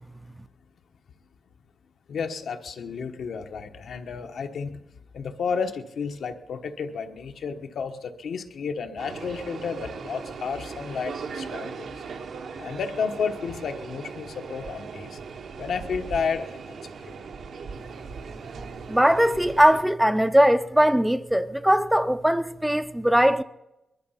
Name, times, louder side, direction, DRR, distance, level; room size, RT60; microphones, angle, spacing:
voice 1, 2.1-4.8 5.1-11.9 12.6-15.2 15.6-16.8 17.0-17.1, left 5 dB, 70° left, 1.2 m, -31 dB
sound 1, 9.0-19.8, right 5 dB, 70° right, 1.1 m, -38 dB
voice 2, 18.9-23.4, equal, 5° right, 0.5 m, -20 dB
21.0 x 12.0 x 5.7 m
wide cardioid pair, 125°, 0 cm